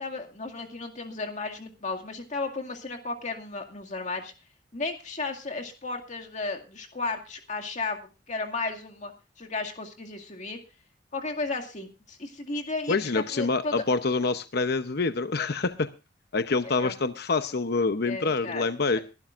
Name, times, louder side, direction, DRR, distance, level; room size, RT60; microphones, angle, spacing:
voice 1, 0.0-4.3 4.7-9.1 9.4-10.6 11.1-13.0 13.3-13.7 16.8-16.9 18.1-19.0, left 3 dB, 45° left, 3 dB, 2.2 m, -34 dB
voice 2, 12.9-15.9 16.3-19.0, left 3 dB, 60° left, 10 dB, 0.8 m, -26 dB
23.5 x 12.0 x 2.5 m, 0.30 s
head